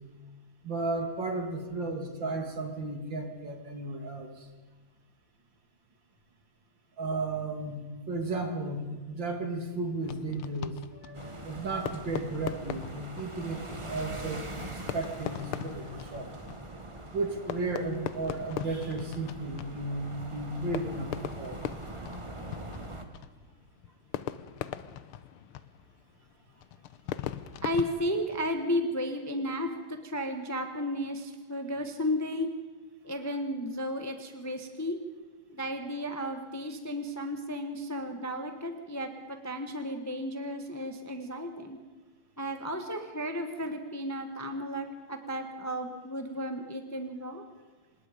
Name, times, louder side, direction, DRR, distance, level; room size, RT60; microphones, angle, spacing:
voice 1, 0.6-4.5 7.0-16.3 17.1-21.6, right 2 dB, 60° right, 4 dB, 3.2 m, -34 dB
Fireworks, 10.0-28.8, left 11 dB, 85° left, 1.7 m, -41 dB
sound 1, 11.1-23.1, right 2 dB, 15° right, 1.3 m, -43 dB
voice 2, 27.6-32.5 33.0-35.0 35.5-41.8 42.4-47.4, equal, 10° left, 6 dB, 1.1 m, -33 dB
25.5 x 20.5 x 5.2 m, 1.4 s
omnidirectional pair, 2.3 m